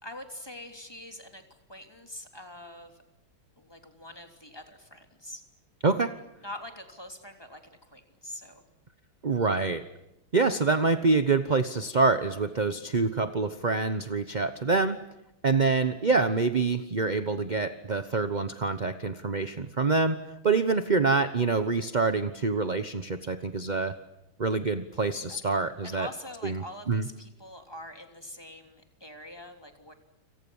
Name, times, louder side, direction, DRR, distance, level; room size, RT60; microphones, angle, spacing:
voice 1, 0.0-1.4 1.7-3.0 3.6-5.4 6.4-8.7 15.5-15.6 25.3-25.6 25.8-29.9, left 1 dB, 10° left, 5 dB, 3.2 m, -44 dB
voice 2, 5.8-6.1 9.2-9.8 10.3-15.0 15.4-23.9 24.4-26.1 26.4-27.1, right 4 dB, 30° right, 10 dB, 0.8 m, -26 dB
30.0 x 27.5 x 7.2 m, 0.91 s
omnidirectional pair, 2.3 m